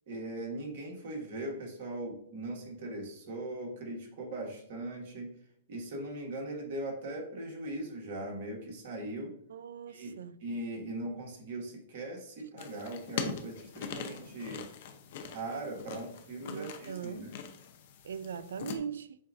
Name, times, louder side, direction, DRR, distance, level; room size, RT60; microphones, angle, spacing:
voice 1, 0.1-5.3 5.7-9.3 9.9-14.7 15.2-17.3, right 1 dB, 60° right, 1.5 m, -40 dB
voice 2, 9.5-10.4 16.5-17.3 18.0-19.2, right 7 dB, 80° right, 0.3 m, -40 dB
sound 1, 12.6-18.8, left 7 dB, 55° left, 0.6 m, -42 dB
7.2 x 2.5 x 2.5 m
hypercardioid pair, 140°, 0 cm